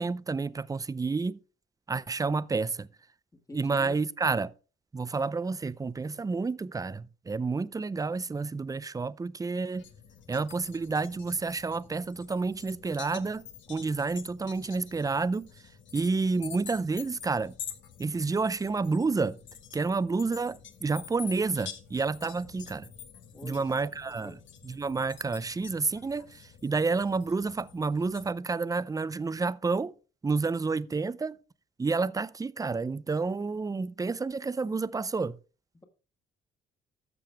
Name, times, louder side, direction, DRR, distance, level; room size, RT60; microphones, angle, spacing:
voice 1, 0.0-1.4 1.9-2.9 3.5-4.5 4.9-9.8 10.3-13.4 13.7-15.5 15.9-17.6 18.0-19.4 19.7-22.9 23.4-24.3 24.6-29.9 30.2-31.4 31.8-35.4, right 4 dB, 15° right, 0.5 m, -30 dB
voice 2, 3.5-4.0 23.3-24.4 35.7-35.8, left 1 dB, 15° left, 1.5 m, -46 dB
sound 1, 9.8-28.3, left 8 dB, 70° left, 1.5 m, -48 dB
13.0 x 6.9 x 3.4 m
cardioid pair, 90°, 20 cm